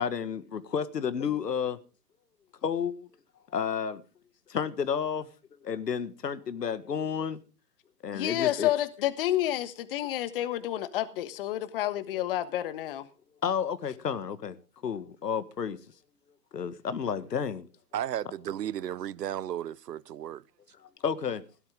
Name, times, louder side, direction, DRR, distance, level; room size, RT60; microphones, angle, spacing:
voice 1, 0.0-1.8 2.6-3.1 3.5-4.0 4.5-7.4 8.0-8.7 12.1-12.2 13.4-14.6 14.8-15.8 16.5-17.7 20.8-21.4, left 7 dB, 90° left, 1.8 m, -31 dB
voice 2, 8.1-13.1, left 13 dB, 35° left, 1.4 m, -29 dB
voice 3, 17.9-20.4, right 11 dB, 85° right, 0.8 m, -34 dB
16.5 x 12.0 x 3.8 m
hypercardioid pair, 150°, 48 cm